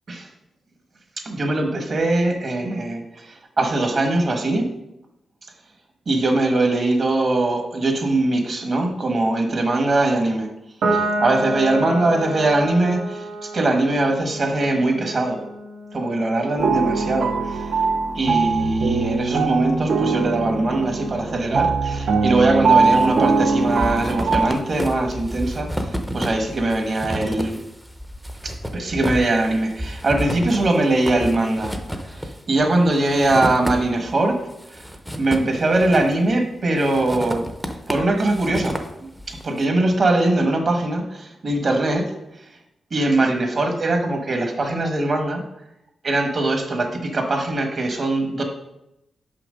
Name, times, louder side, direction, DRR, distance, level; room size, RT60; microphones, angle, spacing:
voice 1, 1.2-4.7 6.1-10.5 10.9-15.4 15.9-17.7 18.1-27.7 28.4-31.8 32.0-34.4 34.7-34.9 35.2-37.5 37.9-38.8 39.3-42.5 42.9-45.4 46.0-48.4, right 2 dB, 40° right, 4 dB, 1.2 m, -21 dB
Piano, 10.8-17.5, right 1 dB, 85° right, 1.6 m, -29 dB
sound 1, 16.6-24.5, right 4 dB, 60° right, 0.6 m, -21 dB
sound 2, 22.5-23.1 23.4-34.1 34.5-36.3 36.8-39.5, equal, ahead, 0.6 m, -31 dB
5.9 x 5.8 x 5.0 m, 0.86 s
wide cardioid pair, 155°, 0 cm